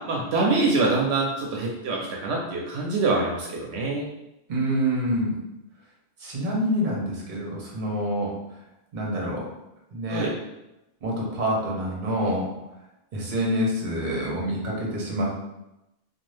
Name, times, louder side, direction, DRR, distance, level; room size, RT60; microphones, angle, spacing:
voice 1, 0.1-4.1 10.1-10.3, right 3 dB, 80° right, -2 dB, 0.8 m, -25 dB
voice 2, 4.5-5.3 6.2-8.3 8.9-9.5 9.9-10.3 11.0-12.5 13.1-15.4, equal, 50° right, -3 dB, 0.9 m, -26 dB
2.5 x 2.3 x 3.2 m, 0.91 s
omnidirectional pair, 1.1 m